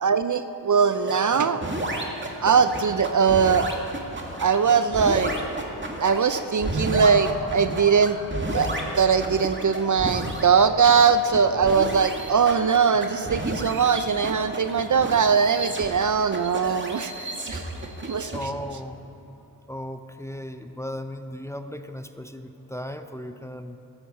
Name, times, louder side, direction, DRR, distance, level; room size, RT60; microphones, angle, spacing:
voice 1, 0.0-1.7 2.4-3.7 4.4-5.3 6.0-8.2 8.5-8.7 9.0-17.6 18.0-18.3, right 6 dB, 45° right, 11 dB, 0.6 m, -21 dB
sound 1, 0.9-18.4, right 1 dB, 25° right, 2.1 m, -32 dB
voice 2, 18.3-19.1 19.7-23.8, equal, 5° left, 8 dB, 0.7 m, -36 dB
15.0 x 12.5 x 4.4 m, 2.9 s
cardioid pair, 45°, 43 cm